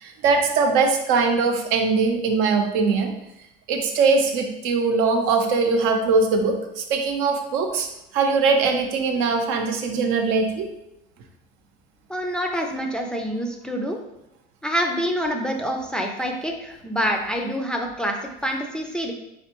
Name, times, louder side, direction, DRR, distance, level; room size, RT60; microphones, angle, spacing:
voice 1, 0.0-3.1 3.7-7.9 8.1-10.7, right 4 dB, 75° right, 4 dB, 0.7 m, -21 dB
voice 2, 12.1-14.0 14.6-19.1, equal, 5° left, 1 dB, 0.4 m, -26 dB
4.2 x 3.4 x 3.0 m, 0.87 s
cardioid pair, 125°, 21 cm